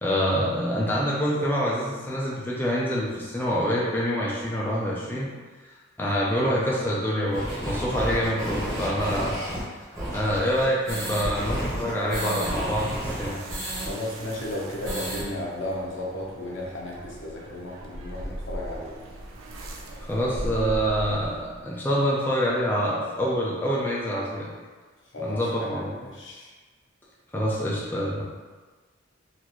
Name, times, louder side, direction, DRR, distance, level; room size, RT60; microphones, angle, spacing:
voice 1, 0.0-5.3 6.0-9.4 10.1-13.4 20.0-24.5 25.2-26.0 27.3-28.2, equal, 10° left, -6 dB, 0.4 m, -26 dB
sound 1, 7.3-13.9 14.2-14.3 14.6-15.2, equal, 15° right, 1.0 m, -31 dB
sound 2, 11.3-21.7, right 1 dB, 85° right, 0.5 m, -40 dB
voice 2, 13.7-18.9 25.1-25.4 25.8-25.9 26.1-26.5, left 1 dB, 70° left, -4 dB, 0.8 m, -34 dB
4.1 x 2.5 x 3.0 m, 1.4 s
head